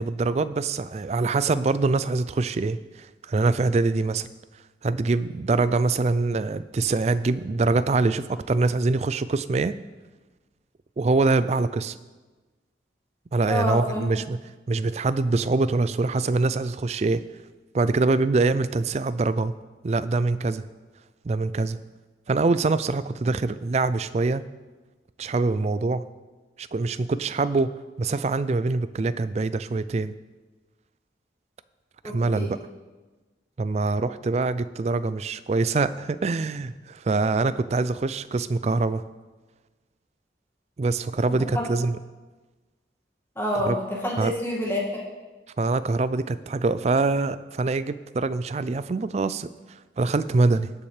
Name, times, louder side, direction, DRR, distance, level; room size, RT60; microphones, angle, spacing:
voice 1, 0.0-4.3 4.8-9.7 11.0-12.0 13.3-14.4 14.7-17.2 17.7-19.5 19.8-20.6 21.2-21.8 22.3-24.4 25.2-26.0 26.6-27.7 28.0-30.1 32.1-32.6 33.6-39.0 40.8-42.0 43.7-43.8 44.2-44.3 45.6-50.7, right 3 dB, 35° right, 14 dB, 0.3 m, -24 dB
voice 2, 13.4-14.2 32.0-32.5 41.3-41.7 43.4-45.0, left 1 dB, 15° left, -3 dB, 2.0 m, -28 dB
18.5 x 7.1 x 3.3 m, 1.2 s
head